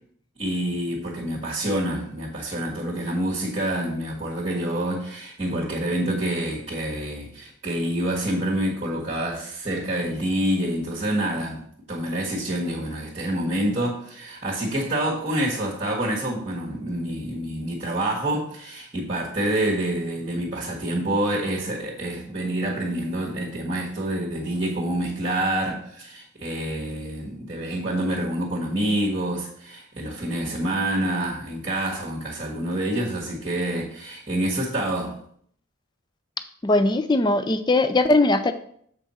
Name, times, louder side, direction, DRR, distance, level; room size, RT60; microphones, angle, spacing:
voice 1, 0.4-35.2, right 1 dB, 30° right, -4 dB, 1.4 m, -27 dB
voice 2, 36.6-38.5, left 2 dB, 20° left, 10 dB, 0.4 m, -20 dB
7.2 x 5.6 x 4.3 m, 0.64 s
head